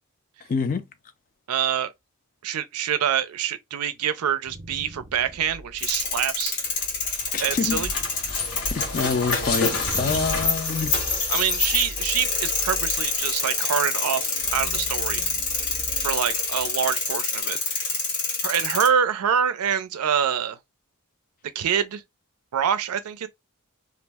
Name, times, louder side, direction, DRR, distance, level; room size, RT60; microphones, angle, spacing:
voice 1, 0.5-0.8 7.3-7.8 8.7-10.9, left 4 dB, 40° left, 0.4 m, -26 dB
voice 2, 1.5-1.9 2.4-6.6 7.4-7.9 11.3-15.2 16.0-17.9 18.4-20.6 21.5-22.0 22.5-23.3, right 8 dB, 90° right, 0.4 m, -26 dB
sound 1, 4.2-17.0, right 1 dB, 25° right, 0.5 m, -42 dB
sound 2, 5.8-18.9, left 4 dB, 90° left, 1.1 m, -27 dB
sound 3, 6.7-11.6, left 3 dB, 70° left, 0.9 m, -33 dB
2.4 x 2.0 x 3.3 m
head